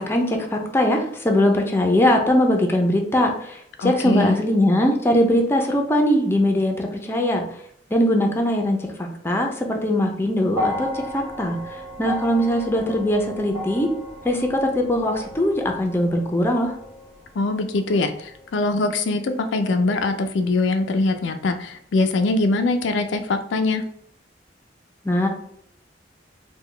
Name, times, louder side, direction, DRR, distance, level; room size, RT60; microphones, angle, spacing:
voice 1, 0.0-7.4 7.9-11.6 12.0-13.9 14.2-16.7 25.0-25.3, left 1 dB, 15° left, 2 dB, 0.5 m, -21 dB
voice 2, 3.8-4.3 17.4-23.8, left 2 dB, 85° left, 7 dB, 0.4 m, -22 dB
sound 1, 10.5-18.8 19.9-20.0, left 1 dB, 20° right, 1.2 m, -34 dB
3.7 x 2.2 x 3.3 m, 0.69 s
head